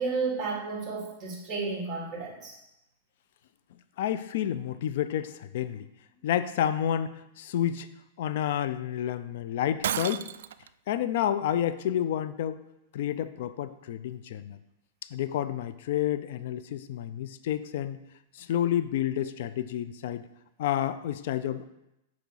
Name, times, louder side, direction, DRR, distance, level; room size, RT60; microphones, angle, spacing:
voice 1, 0.0-2.6, right 4 dB, 20° right, -3 dB, 3.0 m, -32 dB
voice 2, 4.0-5.9 6.2-7.9 8.2-10.3 10.9-12.6 12.9-14.6 15.1-18.0 18.3-20.3 20.6-21.6, left 10 dB, 65° left, 12 dB, 0.6 m, -30 dB
Shatter, 9.8-10.7, right 10 dB, 75° right, 0.3 m, -31 dB
6.9 x 4.9 x 6.4 m, 0.89 s
hypercardioid pair, 140°, 0 cm